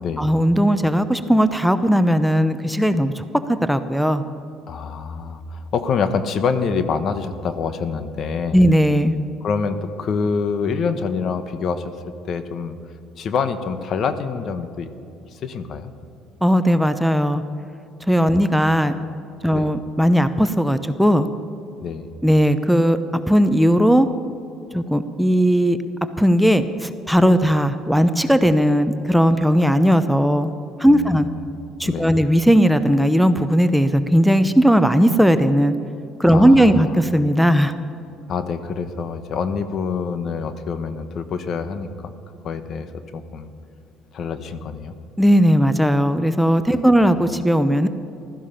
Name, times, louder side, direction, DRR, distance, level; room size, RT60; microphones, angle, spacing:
voice 1, 0.2-3.2 3.6-4.2 8.5-9.2 16.4-17.4 18.1-18.9 19.4-21.3 22.2-23.0 23.3-24.1 24.7-25.8 26.2-30.5 30.8-31.3 31.8-35.7 36.2-37.7 45.2-47.9, equal, ahead, 10 dB, 0.7 m, -17 dB
voice 2, 4.7-8.7 9.4-11.9 12.2-12.8 13.2-14.9 15.3-15.9 19.5-19.7 21.8-22.1 30.9-31.5 31.8-32.2 36.3-36.9 38.3-42.1 42.4-42.9 43.1-43.5 44.1-44.9, left 5 dB, 55° left, 10 dB, 1.1 m, -26 dB
15.0 x 13.0 x 5.7 m, 2.7 s
supercardioid pair, 80°, 0 cm